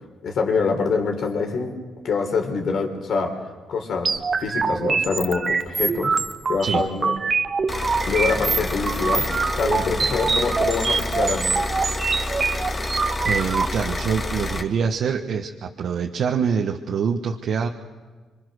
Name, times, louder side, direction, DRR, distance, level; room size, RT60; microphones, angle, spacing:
voice 1, 0.2-1.7 2.0-3.4 3.7-6.1 6.5-7.2 8.1-11.6, left 4 dB, 65° left, 4 dB, 4.0 m, -25 dB
sound 1, 4.0-13.7, right 4 dB, 35° right, 1.0 m, -24 dB
sound 2, 7.7-14.6, left 2 dB, 30° left, 2.4 m, -28 dB
voice 2, 13.2-17.7, right 6 dB, 65° right, 3 dB, 1.3 m, -25 dB
26.0 x 25.0 x 6.5 m, 1.4 s
cardioid pair, 90°, 0 cm